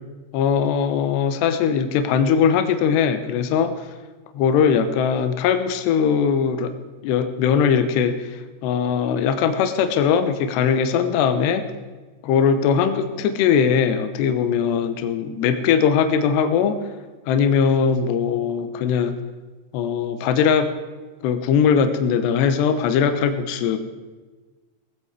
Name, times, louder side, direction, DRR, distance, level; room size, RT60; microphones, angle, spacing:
voice 1, 0.3-3.9 4.3-6.7 7.0-11.6 12.2-16.8 17.3-19.2 19.7-20.7 21.2-23.8, left 7 dB, 75° left, 9 dB, 2.9 m, -20 dB
18.5 x 15.0 x 4.8 m, 1.3 s
omnidirectional pair, 5.7 m